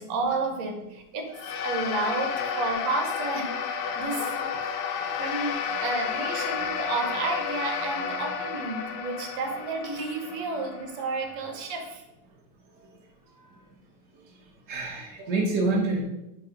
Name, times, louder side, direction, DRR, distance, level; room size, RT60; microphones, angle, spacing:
voice 1, 0.0-1.3 1.6-4.5 5.2-5.6 5.8-12.0, right 3 dB, 70° right, 3 dB, 2.0 m, -31 dB
sound 1, 1.3-11.9, left 6 dB, 80° left, 1.7 m, -32 dB
voice 2, 5.0-5.3 14.7-16.0, right 3 dB, 85° right, -3 dB, 0.6 m, -27 dB
8.3 x 2.9 x 4.9 m, 0.92 s
omnidirectional pair, 3.3 m